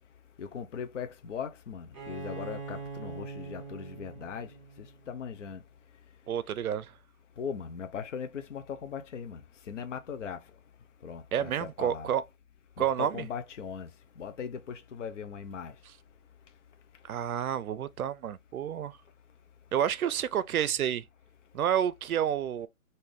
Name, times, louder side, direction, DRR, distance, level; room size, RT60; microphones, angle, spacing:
voice 1, 0.4-4.5 5.1-5.6 7.4-9.4 9.7-10.4 11.0-12.1 12.8-13.9 14.2-15.7, left 7 dB, 60° left, 0.6 m, -39 dB
Bowed string instrument, 1.9-5.6, right 4 dB, 25° right, 0.8 m, -43 dB
voice 2, 6.3-6.9 11.3-12.2 12.8-13.3 15.9-16.0 17.1-19.0 19.7-21.0 21.5-22.7, right 9 dB, 75° right, 0.5 m, -29 dB
3.3 x 2.6 x 3.7 m
hypercardioid pair, 170°, 43 cm